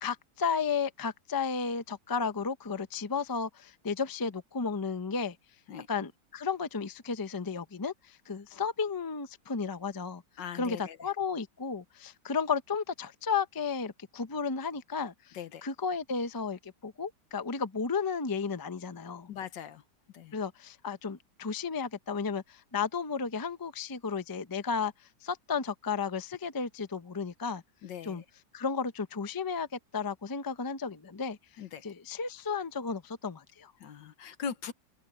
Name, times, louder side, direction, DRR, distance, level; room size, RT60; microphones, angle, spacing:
voice 1, 0.0-5.4 5.9-10.2 10.5-19.3 20.3-24.9 25.2-27.6 28.0-28.2 28.5-31.4 31.8-33.7, left 5 dB, 25° left, 0.4 m, -33 dB
voice 2, 10.4-11.0 15.3-15.6 19.3-19.8 20.1-20.4 27.8-28.2 31.6-31.9 33.8-34.7, left 7 dB, 85° left, 1.8 m, -40 dB
open air
omnidirectional pair, 1.9 m